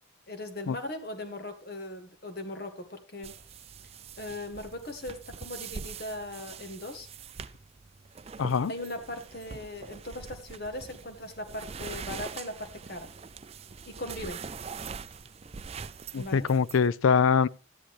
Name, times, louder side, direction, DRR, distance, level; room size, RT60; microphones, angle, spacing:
voice 1, 0.3-3.4 4.2-7.1 8.7-13.1 13.9-14.4 16.1-16.5, left 1 dB, 50° left, 1.8 m, -39 dB
sound 1, 3.2-16.9, right 5 dB, 30° right, 0.4 m, -43 dB
voice 2, 8.4-8.7 16.1-17.5, left 6 dB, 85° left, 0.4 m, -23 dB
13.0 x 10.0 x 3.2 m
head